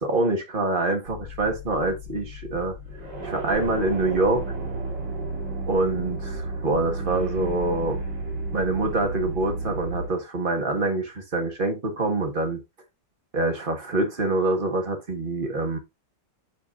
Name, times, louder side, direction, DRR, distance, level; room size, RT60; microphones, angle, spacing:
voice 1, 0.0-2.8 3.2-4.4 5.7-8.0 8.5-12.6 13.3-15.8, right 2 dB, 30° right, 1.5 m, -25 dB
sound 1, 1.0-10.1, right 2 dB, 55° right, 3.4 m, -32 dB
7.3 x 5.1 x 2.6 m
omnidirectional pair, 2.1 m